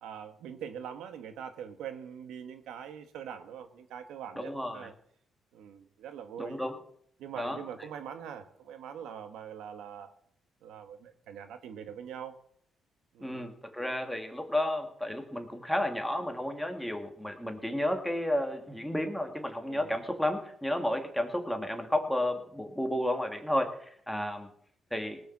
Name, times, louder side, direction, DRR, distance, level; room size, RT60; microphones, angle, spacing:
voice 1, 0.0-4.9 5.5-6.6 7.2-10.1 10.6-12.3 13.1-13.5 19.6-20.0, right 8 dB, 85° right, 1.4 m, -43 dB
voice 2, 4.4-4.9 6.4-6.7 7.4-7.6 13.2-23.7 24.1-24.5 24.9-25.2, left 1 dB, 5° left, 2.2 m, -32 dB
18.5 x 6.9 x 7.3 m
cardioid pair, 90°, 0 cm